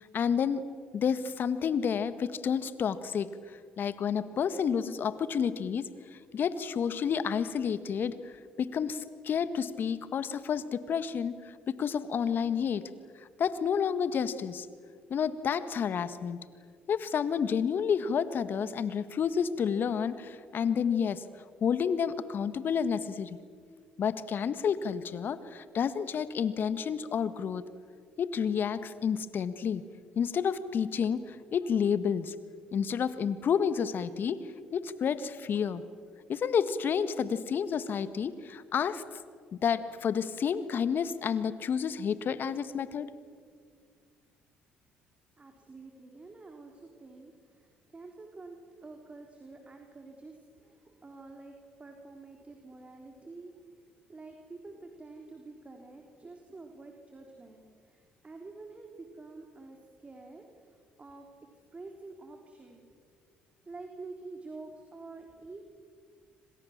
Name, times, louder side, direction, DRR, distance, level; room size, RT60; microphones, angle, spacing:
voice 1, 0.1-0.6 0.9-3.3 3.8-8.1 8.6-11.3 11.7-12.8 13.4-14.7 15.1-16.4 16.9-21.2 21.6-23.4 24.0-27.6 28.2-29.8 30.1-32.3 32.7-34.4 34.7-35.8 36.3-39.0 39.5-43.1, left 7 dB, 55° left, 13 dB, 1.7 m, -30 dB
voice 2, 45.4-63.0 63.7-65.6, right 3 dB, 30° right, 3 dB, 3.8 m, -48 dB
27.5 x 26.0 x 7.4 m, 2.1 s
hypercardioid pair, 55°, 4 cm